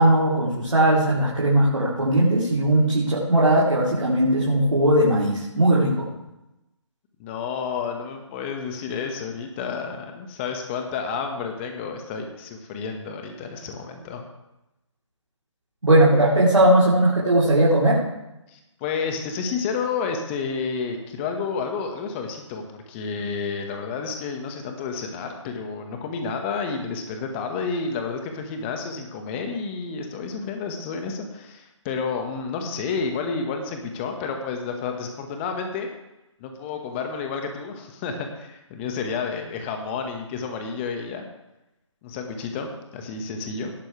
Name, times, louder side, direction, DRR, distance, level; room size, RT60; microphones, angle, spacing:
voice 1, 0.0-6.1 15.8-18.0, right 1 dB, 85° right, -6 dB, 3.9 m, -18 dB
voice 2, 7.2-14.2 18.5-35.9 36.4-41.2 42.0-43.7, left 5 dB, 20° left, 4 dB, 1.7 m, -30 dB
18.5 x 9.8 x 3.5 m, 0.94 s
figure-of-eight pair, 145°, 16 cm